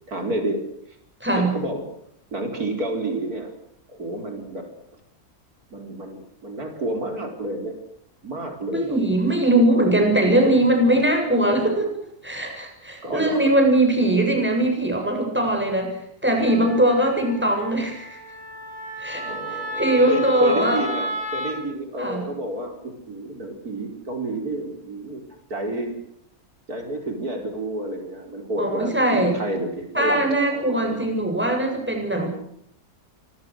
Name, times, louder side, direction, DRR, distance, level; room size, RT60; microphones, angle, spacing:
voice 1, 0.1-0.6 1.3-1.9 2.3-3.5 3.9-4.7 5.7-7.8 8.2-9.0 9.6-9.7 10.3-10.6 13.0-13.5 19.2-25.2 25.5-26.0 26.7-31.1, right 1 dB, 80° right, 4 dB, 5.4 m, -30 dB
voice 2, 1.2-1.5 8.7-15.9 16.2-18.2 19.0-19.2 19.8-20.8 22.0-22.2 28.6-29.4 29.9-32.3, right 1 dB, 5° right, 3 dB, 7.9 m, -21 dB
Wind instrument woodwind instrument, 16.4-21.6, equal, 35° right, 7.2 m, -32 dB
26.5 x 25.0 x 6.5 m, 0.71 s
omnidirectional pair, 1.6 m